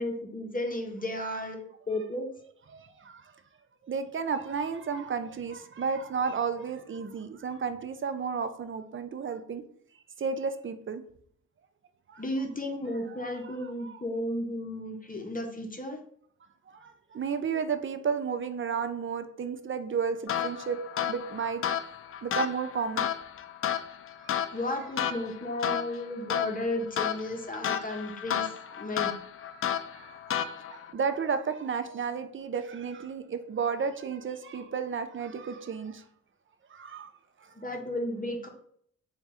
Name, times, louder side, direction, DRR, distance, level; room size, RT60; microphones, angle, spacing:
voice 1, 0.0-2.3 12.2-16.0 24.5-28.5 28.8-29.1 37.6-38.5, left 1 dB, 25° left, 3 dB, 0.9 m, -33 dB
voice 2, 2.7-3.2 3.8-9.6 10.2-11.0 12.1-12.3 13.1-13.2 13.4-14.0 16.7-20.8 21.1-21.6 22.2-23.1 24.2-24.3 28.8-29.0 29.5-29.6 29.9-30.2 30.5-36.0 36.7-37.1, right 6 dB, 40° right, 9 dB, 0.5 m, -33 dB
sound 1, 20.3-30.9, left 9 dB, 45° left, 0.4 m, -33 dB
3.3 x 2.4 x 4.2 m, 0.63 s
supercardioid pair, 55°, 33 cm